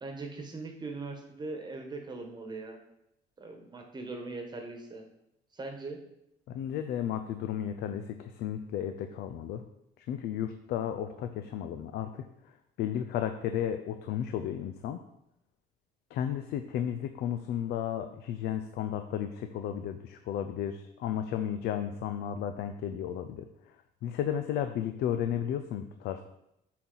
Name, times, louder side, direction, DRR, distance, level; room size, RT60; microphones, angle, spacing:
voice 1, 0.0-2.8 3.4-5.0 5.5-6.0, right 3 dB, 25° right, 3 dB, 1.2 m, -40 dB
voice 2, 6.5-9.6 10.0-12.2 12.8-15.0 16.1-23.8 24.0-26.2, left 9 dB, 75° left, 8 dB, 0.5 m, -33 dB
8.3 x 4.2 x 4.0 m, 0.82 s
cardioid pair, 110°, 17 cm